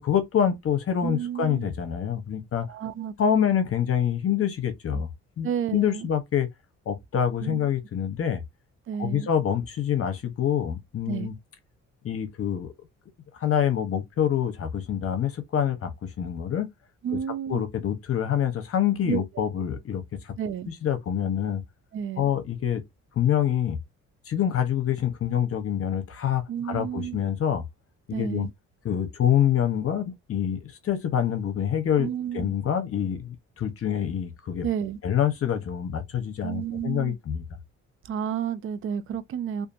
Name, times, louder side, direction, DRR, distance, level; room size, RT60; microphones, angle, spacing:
voice 1, 0.0-2.7 3.2-5.1 5.4-6.5 6.9-8.4 9.0-11.3 12.0-12.7 13.4-16.7 17.5-20.3 20.7-21.6 22.2-22.8 23.2-23.8 24.3-27.6 28.1-28.5 28.8-32.1 32.3-34.7 35.0-37.4, left 9 dB, 50° left, 0.8 m, -26 dB
voice 2, 1.0-1.7 2.7-3.5 5.4-6.1 7.4-7.7 8.9-9.3 11.1-11.3 17.0-17.7 19.1-19.2 20.4-20.7 21.9-22.3 26.5-27.2 28.1-28.5 32.0-32.5 34.6-35.0 36.4-37.2 38.0-39.7, right 8 dB, 45° right, 0.4 m, -31 dB
2.5 x 2.5 x 2.5 m
cardioid pair, 90°, 30 cm